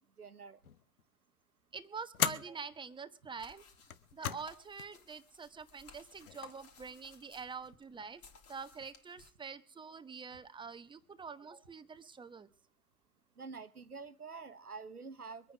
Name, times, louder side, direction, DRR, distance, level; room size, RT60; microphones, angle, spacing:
voice 1, 0.2-0.6 13.4-15.5, right 4 dB, 90° right, 12 dB, 1.3 m, -47 dB
sound 1, 0.6-1.0 2.1-2.5 3.8-4.5 4.8-4.9 6.0-6.5, left 9 dB, 70° left, 1.1 m, -37 dB
voice 2, 1.7-3.6 4.1-8.2 8.5-12.5, right 5 dB, 10° right, 10 dB, 1.0 m, -46 dB
sound 2, 3.4-9.3, left 4 dB, 35° left, 3.3 m, -59 dB
23.0 x 9.0 x 6.1 m, 0.43 s
figure-of-eight pair, 90°, 44 cm